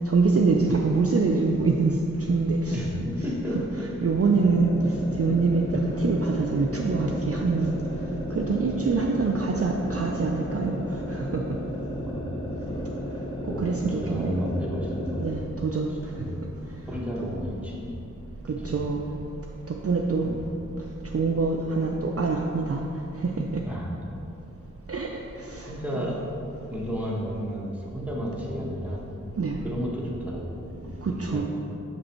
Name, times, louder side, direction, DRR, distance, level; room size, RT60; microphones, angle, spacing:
voice 1, 0.1-2.0 2.3-2.6 4.0-4.8 5.2-7.8 8.3-10.8 11.1-11.4 13.6-14.4 15.2-15.9 17.2-17.3 18.6-19.1 19.7-20.4 21.1-22.8 23.2-23.6 24.9-25.2 25.5-25.7 26.0-26.1 29.4-29.6 31.0-31.4, right 4 dB, 50° right, 1 dB, 0.4 m, -24 dB
voice 2, 2.7-4.1 4.8-4.9 12.0-12.4 13.5-13.6 13.9-15.3 15.9-16.6 16.9-17.9 18.5-19.0 20.2-20.5 23.6-23.9 25.7-26.2 26.7-29.0 29.6-31.4, equal, 5° right, -5 dB, 1.3 m, -32 dB
sound 1, 4.3-15.4, equal, 15° left, 0.8 m, -34 dB
6.1 x 5.2 x 4.4 m, 2.8 s
wide cardioid pair, 50°, 32 cm